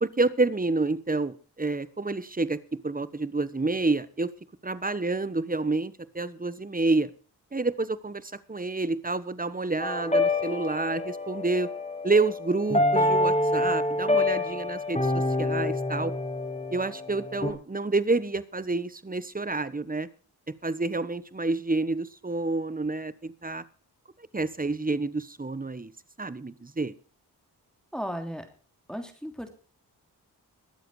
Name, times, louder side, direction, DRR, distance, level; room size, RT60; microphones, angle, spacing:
voice 1, 0.0-4.3 4.6-7.1 7.5-11.7 12.0-16.1 16.7-20.1 20.5-23.6 24.3-25.9 26.2-26.9, right 3 dB, 20° right, 16 dB, 1.2 m, -28 dB
sound 1, 9.8-17.5, left 2 dB, 15° left, 4.8 m, -27 dB
voice 2, 27.9-28.4 28.9-29.5, equal, ahead, 5 dB, 3.2 m, -35 dB
22.0 x 7.8 x 4.9 m, 0.39 s
cardioid pair, 50°, 39 cm